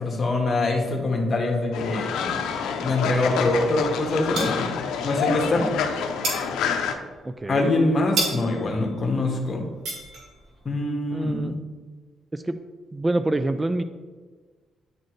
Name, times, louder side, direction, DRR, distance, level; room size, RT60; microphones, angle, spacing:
voice 1, 0.0-2.4 2.8-4.7 5.0-5.7 7.5-9.6 10.6-11.6, left 2 dB, 40° left, 1 dB, 1.5 m, -24 dB
Fowl, 1.7-6.9, left 6 dB, 90° left, 0.6 m, -27 dB
sound 1, 2.7-3.8 4.0-5.2 5.5-10.7, right 2 dB, 80° right, 1.9 m, -33 dB
voice 2, 7.2-7.7 11.1-11.5 12.3-12.6 12.9-13.8, right 2 dB, 20° right, 10 dB, 0.3 m, -26 dB
9.8 x 4.3 x 3.2 m, 1.4 s
cardioid pair, 90°, 0 cm